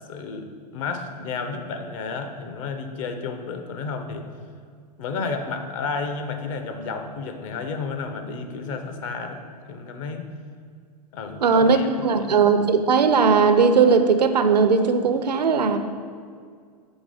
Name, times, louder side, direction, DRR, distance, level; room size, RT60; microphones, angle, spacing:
voice 1, 0.1-4.3 5.0-10.3 11.1-12.3, left 4 dB, 50° left, 6 dB, 0.7 m, -32 dB
voice 2, 11.4-11.8 12.0-15.8, right 5 dB, 80° right, 9 dB, 0.5 m, -18 dB
7.2 x 3.5 x 4.9 m, 2.1 s
figure-of-eight pair, 105°, 21 cm